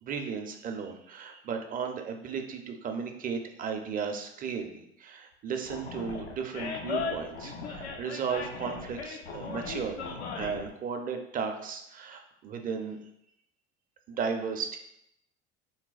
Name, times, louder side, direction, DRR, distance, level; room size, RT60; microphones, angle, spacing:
voice 1, 0.0-13.0 14.1-14.8, right 6 dB, 25° right, 5 dB, 0.4 m, -35 dB
Animal, 5.7-10.7, left 4 dB, 90° left, 0.5 m, -37 dB
3.9 x 2.2 x 2.3 m, 0.78 s
hypercardioid pair, 70°, 32 cm